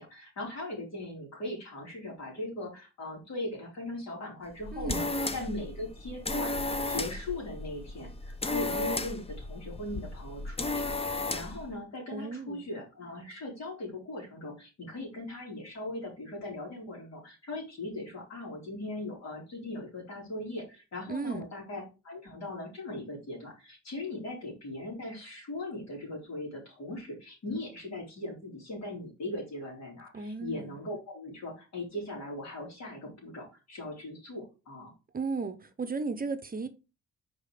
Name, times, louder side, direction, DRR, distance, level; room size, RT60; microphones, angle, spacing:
voice 1, 0.0-5.1 5.3-6.6 6.9-34.9, left 1 dB, 60° left, 4.1 m, -39 dB
sound 1, 4.5-11.7, left 2 dB, 20° left, 0.8 m, -34 dB
voice 2, 4.7-5.1 12.1-12.7 21.1-21.5 30.1-30.8 35.1-36.7, right 4 dB, 30° right, 0.8 m, -35 dB
5.4 x 4.9 x 4.9 m
cardioid pair, 90°, 30 cm